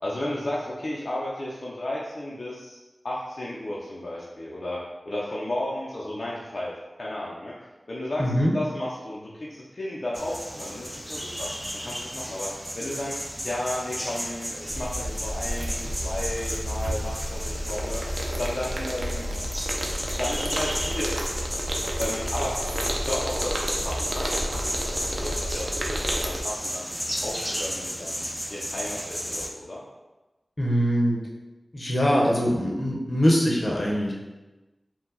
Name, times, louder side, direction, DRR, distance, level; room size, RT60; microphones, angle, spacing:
voice 1, 0.0-2.8 3.0-7.5 7.9-13.2 13.4-18.0 18.4-19.3 20.2-21.2 22.0-26.9 27.2-28.2 28.5-29.8, left 1 dB, 60° left, -6 dB, 0.6 m, -33 dB
voice 2, 8.2-8.5 30.6-31.2 31.7-34.1, equal, 40° left, -3 dB, 1.0 m, -22 dB
sound 1, 10.1-29.5, equal, ahead, 0.5 m, -34 dB
sound 2, 14.7-26.4, equal, 55° right, 0.6 m, -31 dB
4.5 x 2.3 x 4.0 m, 1.1 s
wide cardioid pair, 65°, 0 cm